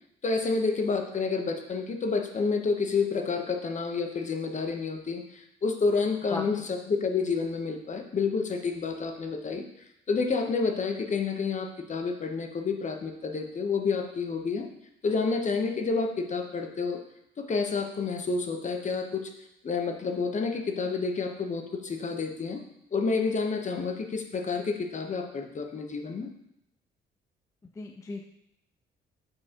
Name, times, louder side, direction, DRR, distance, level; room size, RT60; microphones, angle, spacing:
voice 1, 0.2-6.6 6.9-9.6 10.1-14.7 15.0-17.0 17.4-19.3 19.6-22.6 22.9-26.3, left 4 dB, 40° left, 5 dB, 0.9 m, -29 dB
voice 2, 6.3-6.7 27.8-28.2, left 2 dB, 15° left, 4 dB, 0.4 m, -36 dB
7.7 x 4.6 x 2.9 m, 0.81 s
cardioid pair, 90°, 20 cm